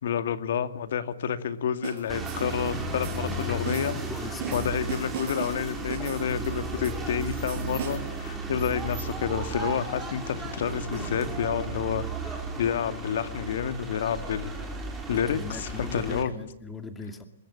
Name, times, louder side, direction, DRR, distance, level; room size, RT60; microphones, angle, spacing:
voice 1, 0.0-3.9 4.5-14.5 15.1-16.3, left 8 dB, 65° left, 11 dB, 2.3 m, -29 dB
sound 1, 1.8-8.2, right 7 dB, 50° right, 7.0 m, -39 dB
sound 2, 2.1-16.2, right 3 dB, 5° right, 5.0 m, -34 dB
voice 2, 3.3-3.6 4.1-4.6 15.1-17.2, left 3 dB, 10° left, 8 dB, 2.5 m, -39 dB
23.0 x 23.0 x 9.8 m, 0.70 s
hypercardioid pair, 155°, 0 cm